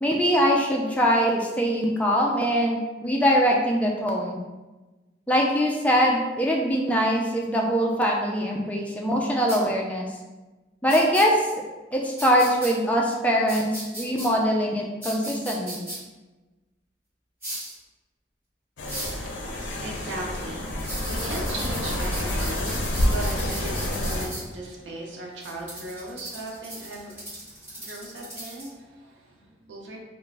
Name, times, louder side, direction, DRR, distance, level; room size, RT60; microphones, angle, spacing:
voice 1, 0.0-4.4 5.3-10.1 10.8-11.5 11.9-15.8, equal, 10° left, -1 dB, 0.3 m, -23 dB
sound 1, 9.5-9.6 10.9-11.2 12.2-12.7 13.5-14.3 15.0-16.0 17.4-17.7 18.9-19.2 20.8-24.4 25.4-28.7, right 1 dB, 15° right, 1.1 m, -36 dB
sound 2, 18.8-24.3, left 1 dB, 80° left, 0.5 m, -28 dB
voice 2, 19.2-30.0, right 2 dB, 80° right, -2 dB, 0.5 m, -38 dB
2.3 x 2.1 x 3.2 m, 1.2 s
head